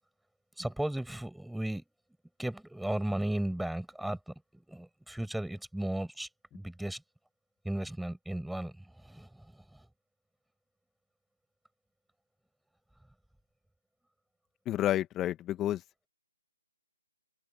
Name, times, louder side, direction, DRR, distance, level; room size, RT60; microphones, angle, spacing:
voice 1, 0.6-1.8 2.4-7.0 7.6-9.9, right 1 dB, ahead, 6.6 m, -36 dB
voice 2, 14.7-15.8, left 13 dB, 15° left, 1.9 m, -30 dB
figure-of-eight pair, 145°, 0 cm